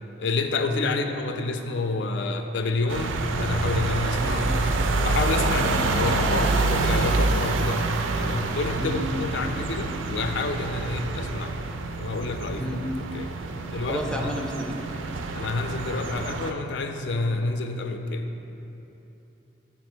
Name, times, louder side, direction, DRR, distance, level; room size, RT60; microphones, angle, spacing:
voice 1, 0.2-4.5 5.0-7.8 8.1-12.6 13.1-13.3 13.7-14.0 15.3-18.3, left 3 dB, 65° left, 6 dB, 0.4 m, -29 dB
sound 1, 2.9-16.5, right 3 dB, 85° right, 0.4 m, -27 dB
voice 2, 13.9-14.7, equal, 5° left, 0 dB, 0.4 m, -31 dB
5.5 x 4.0 x 6.1 m, 3.0 s
head